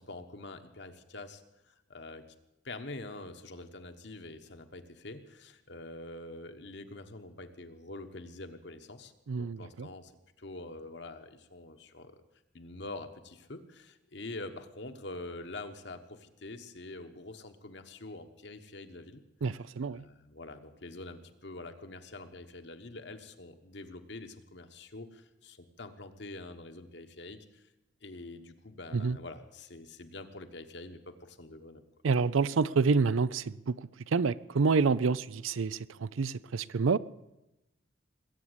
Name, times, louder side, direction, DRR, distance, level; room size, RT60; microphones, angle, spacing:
voice 1, 0.0-1.4 1.7-2.2 2.6-10.1 10.4-12.2 12.5-19.2 19.9-27.6 28.0-31.8, left 2 dB, 60° left, 1.3 m, -45 dB
voice 2, 9.3-9.9 19.4-20.0 28.9-29.2 32.0-37.0, right 4 dB, 90° right, 0.5 m, -28 dB
20.5 x 8.6 x 8.0 m
head